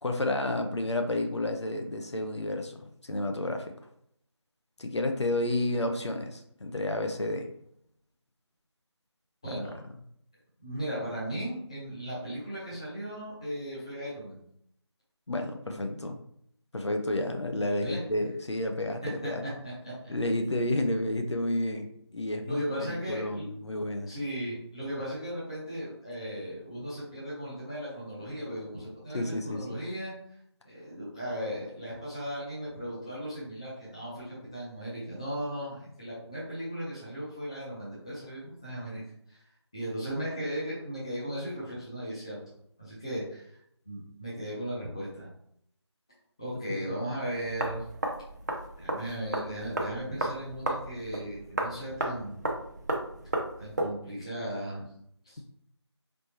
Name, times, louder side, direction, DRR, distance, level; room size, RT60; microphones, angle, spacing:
voice 1, 0.0-3.7 4.8-7.5 9.5-9.6 15.3-16.2 16.7-19.4 20.1-21.9 22.1-24.1 29.1-29.8, left 1 dB, 70° left, 4 dB, 0.7 m, -31 dB
voice 2, 9.4-9.8 10.6-14.4 17.7-18.0 19.0-19.9 22.5-23.5 24.1-30.1 30.6-39.0 39.3-39.4 39.7-42.4 42.8-43.6 43.8-45.3 46.4-47.8 48.8-52.5 53.6-54.8 55.2-55.5, equal, 10° left, -9 dB, 0.7 m, -36 dB
sound 1, 47.3-53.9, right 1 dB, 35° right, 0.6 m, -34 dB
4.1 x 3.4 x 2.8 m, 0.71 s
figure-of-eight pair, 170°, 15 cm